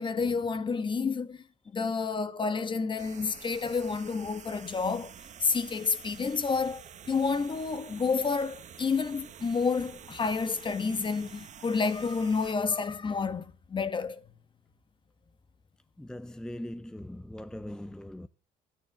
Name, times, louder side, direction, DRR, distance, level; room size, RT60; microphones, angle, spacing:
voice 1, 0.0-1.4 1.7-5.1 5.4-6.8 7.1-14.2, left 5 dB, 30° left, 1.3 m, -29 dB
sound 1, 3.0-12.5, right 8 dB, 45° right, 1.1 m, -49 dB
voice 2, 16.0-18.3, left 1 dB, 5° left, 0.6 m, -40 dB
13.0 x 9.3 x 6.9 m
cardioid pair, 110°, 17 cm